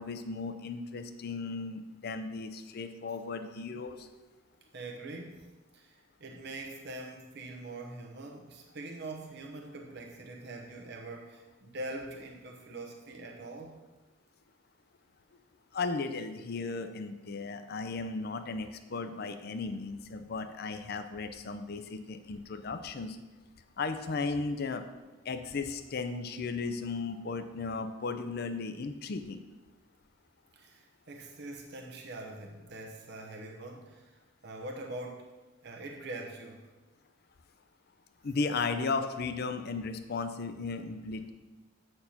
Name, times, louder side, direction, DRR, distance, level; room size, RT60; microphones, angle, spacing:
voice 1, 0.0-4.1 15.7-23.2 23.8-24.9 25.2-29.4 38.2-41.3, left 4 dB, 55° left, 8 dB, 0.5 m, -35 dB
voice 2, 4.7-5.4 5.7-13.8 30.5-35.3 35.6-36.7, right 2 dB, 60° right, 1 dB, 0.9 m, -43 dB
8.3 x 4.4 x 5.7 m, 1.2 s
head